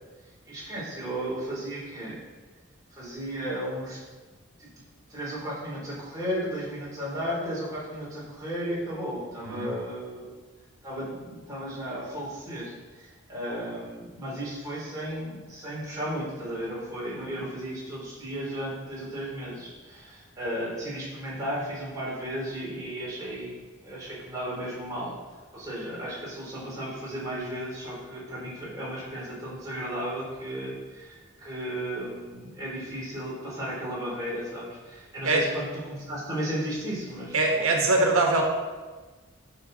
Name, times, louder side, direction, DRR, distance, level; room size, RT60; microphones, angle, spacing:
voice 1, 0.4-2.2 2.9-4.0 4.6-4.7 5.1-10.3 10.8-23.5 23.8-25.1 25.5-37.7, right 1 dB, 15° right, -7 dB, 3.2 m, -34 dB
voice 2, 37.3-38.4, right 2 dB, 90° right, 2 dB, 1.3 m, -22 dB
12.5 x 5.9 x 3.9 m, 1.3 s
head